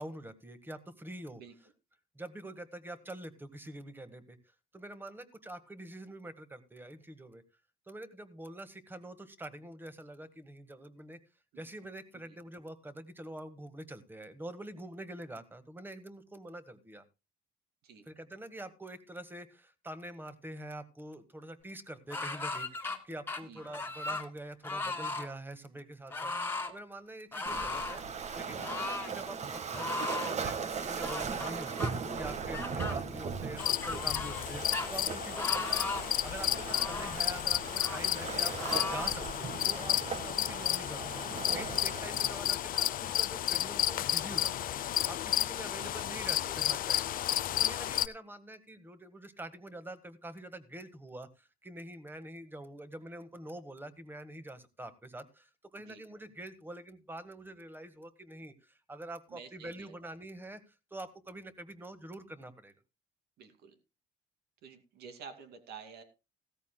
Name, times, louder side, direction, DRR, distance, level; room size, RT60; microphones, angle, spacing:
voice 1, 0.0-1.4 2.1-4.4 4.7-7.4 7.9-11.2 11.6-17.0 18.1-29.9 30.2-34.6 34.9-35.9 36.2-38.5 38.9-44.7 45.1-47.1 47.6-62.7, right 1 dB, 10° right, 11 dB, 1.5 m, -46 dB
sound 1, 22.1-23.0 23.3-24.3 24.6-25.3 26.1-26.7 27.3-28.0 28.6-29.1 29.7-30.4 31.0-31.9 32.5-32.9 33.6-34.5 34.7-34.9 35.4-36.1 36.7-37.2 37.8-38.0 38.6-39.2, left 3 dB, 15° left, 1.9 m, -37 dB
Waves surf, 27.5-42.4, right 5 dB, 40° right, 1.5 m, -39 dB
sound 2, 33.6-48.1, left 12 dB, 55° left, 0.6 m, -32 dB
voice 2, 45.8-46.5 55.8-56.0 59.3-59.9 63.4-63.7 64.6-66.0, right 6 dB, 70° right, 8 dB, 2.4 m, -50 dB
16.0 x 14.0 x 2.2 m, 0.27 s
cardioid pair, 110°, 17 cm